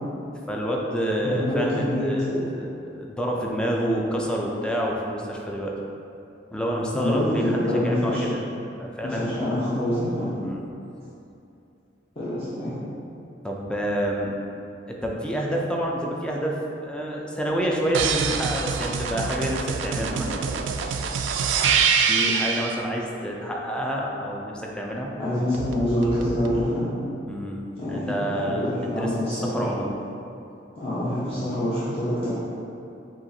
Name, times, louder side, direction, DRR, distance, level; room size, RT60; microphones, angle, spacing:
voice 1, 0.5-5.7 6.5-8.4 8.8-9.4 10.4-10.7 13.4-14.3 14.9-20.5 22.1-25.1 27.3-29.9 31.3-31.5, equal, 5° left, -2 dB, 0.4 m, -28 dB
voice 2, 1.2-2.4 6.9-8.2 9.0-10.4 12.1-12.7 25.2-26.9 27.8-29.6 30.8-32.3, left 1 dB, 30° left, -14 dB, 1.0 m, -26 dB
sound 1, 17.9-22.8 25.5-26.6, right 6 dB, 80° right, 0.3 m, -25 dB
7.4 x 2.5 x 2.7 m, 2.7 s
head